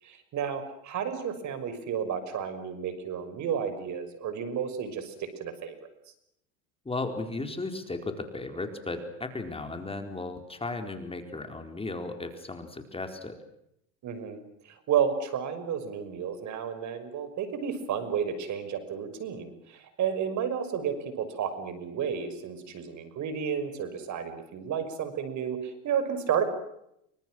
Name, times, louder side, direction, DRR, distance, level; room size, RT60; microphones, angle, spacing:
voice 1, 0.0-5.9 14.0-26.4, right 7 dB, 50° right, 11 dB, 5.9 m, -32 dB
voice 2, 6.8-13.3, left 3 dB, 15° left, 6 dB, 4.5 m, -35 dB
29.0 x 25.0 x 6.3 m, 0.78 s
supercardioid pair, 95°, 37 cm